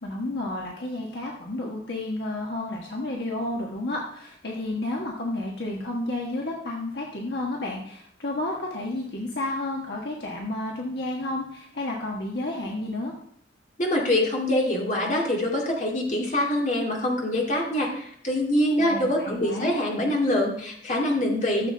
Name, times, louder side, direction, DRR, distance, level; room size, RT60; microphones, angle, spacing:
voice 1, 0.0-13.1 18.8-19.8, left 2 dB, 65° left, -2 dB, 1.4 m, -31 dB
voice 2, 13.8-21.7, left 1 dB, 40° left, -1 dB, 2.2 m, -24 dB
13.5 x 7.2 x 3.4 m, 0.67 s
head